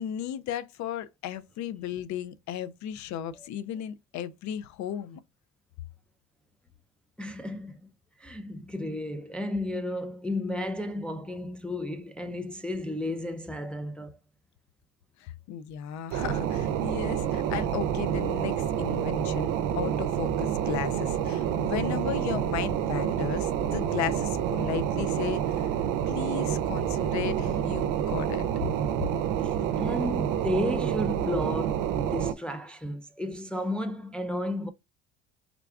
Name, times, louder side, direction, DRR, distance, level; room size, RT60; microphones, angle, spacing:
voice 1, 0.0-5.2 15.2-25.7 26.1-28.5, left 10 dB, 60° left, 0.5 m, -35 dB
voice 2, 7.2-7.9 8.2-14.2 29.4-34.7, left 1 dB, 5° left, 0.3 m, -33 dB
sound 1, 16.1-32.3, right 9 dB, 75° right, 0.6 m, -28 dB
3.6 x 2.3 x 3.5 m
supercardioid pair, 95°, 32 cm